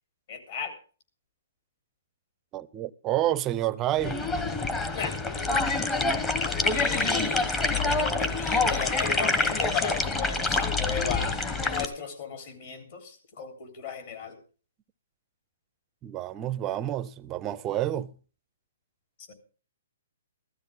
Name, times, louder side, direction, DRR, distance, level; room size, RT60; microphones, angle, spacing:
voice 1, 0.3-0.7 4.9-5.1 6.4-14.4 19.3-19.4, left 7 dB, 50° left, 3.7 m, -36 dB
voice 2, 2.5-4.3 16.0-18.1, right 13 dB, 20° right, 0.5 m, -29 dB
sound 1, 4.0-11.8, left 3 dB, 15° left, 1.0 m, -26 dB
15.5 x 13.0 x 3.6 m
hypercardioid pair, 155°, 0 cm